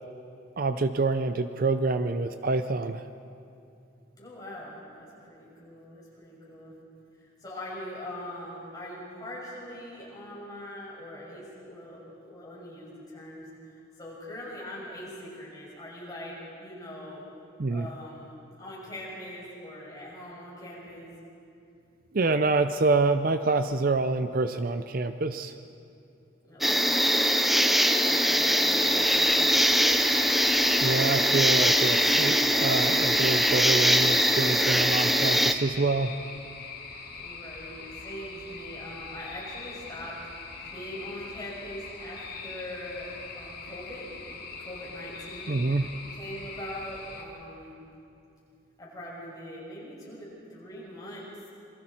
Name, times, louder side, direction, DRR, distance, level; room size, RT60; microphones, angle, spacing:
voice 1, 0.6-3.0 17.6-17.9 22.1-25.5 30.8-36.1 45.5-45.9, right 3 dB, 45° right, 10 dB, 0.5 m, -26 dB
voice 2, 4.1-6.8 7.1-17.2 17.7-18.3 18.6-21.1 26.5-29.3 37.2-45.6 46.1-47.8 48.8-51.3, left 1 dB, 20° left, -6 dB, 6.2 m, -42 dB
sound 1, 26.6-35.5, equal, ahead, 0.6 m, -22 dB
sound 2, 28.8-47.2, left 4 dB, 50° left, 2.4 m, -42 dB
27.5 x 23.5 x 4.4 m, 2.6 s
head